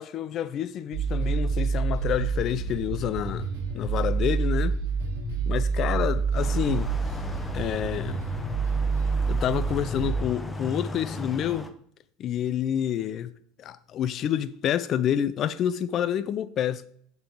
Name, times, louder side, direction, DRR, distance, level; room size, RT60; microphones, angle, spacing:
voice 1, 0.0-3.5 3.7-4.8 5.5-7.2 7.5-8.2 9.3-11.7 12.2-13.3 13.6-16.9, left 10 dB, 45° left, 0.5 m, -28 dB
sound 1, 0.9-10.2, right 5 dB, 85° right, 2.3 m, -27 dB
sound 2, 6.4-11.7, left 2 dB, 10° left, 0.9 m, -37 dB
7.1 x 5.3 x 4.4 m
hypercardioid pair, 85°, 0 cm